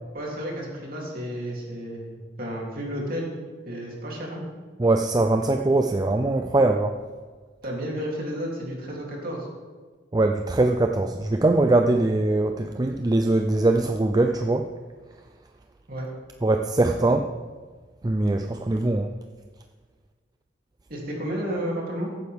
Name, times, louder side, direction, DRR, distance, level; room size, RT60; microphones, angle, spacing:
voice 1, 0.1-3.3 3.6-4.4 7.6-9.5 15.9-16.1 20.9-22.1, equal, 50° right, -3 dB, 2.9 m, -32 dB
voice 2, 4.8-6.9 10.1-14.7 16.4-17.3 18.0-19.1, right 2 dB, 20° right, 5 dB, 0.4 m, -22 dB
15.5 x 9.3 x 3.5 m, 1.5 s
head